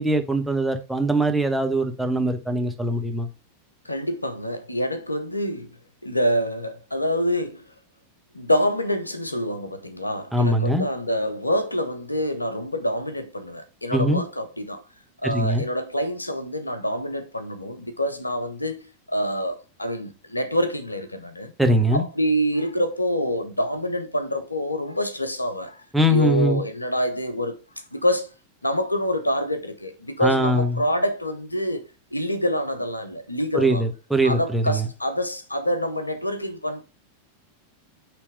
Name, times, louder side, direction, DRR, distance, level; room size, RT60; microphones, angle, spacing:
voice 1, 0.0-3.3 10.3-10.9 13.9-14.2 15.2-15.6 21.6-22.0 25.9-26.6 30.2-30.8 33.5-34.9, right 1 dB, ahead, 1.1 m, -22 dB
voice 2, 3.8-5.8 6.0-7.7 8.3-14.8 15.2-21.5 21.9-27.6 27.9-28.3 28.6-33.8 34.2-36.8, equal, 85° left, 0.8 m, -26 dB
8.6 x 3.4 x 4.8 m
figure-of-eight pair, 90°, 0 cm